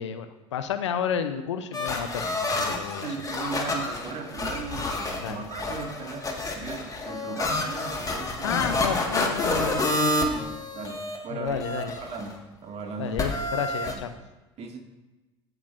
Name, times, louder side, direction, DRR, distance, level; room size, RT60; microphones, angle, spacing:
voice 1, 0.0-3.1 5.2-5.4 8.4-10.3 11.3-11.9 13.0-14.1, left 8 dB, 90° left, 10 dB, 0.6 m, -31 dB
sound 1, 1.7-11.2 11.5-12.3 13.2-13.9, left 2 dB, 25° left, 1.6 m, -29 dB
voice 2, 2.7-8.5 10.3-13.2 13.9-14.0 14.6-14.8, right 5 dB, 45° right, 2 dB, 2.0 m, -37 dB
16.5 x 5.9 x 2.5 m, 1.1 s
hypercardioid pair, 70°, 15 cm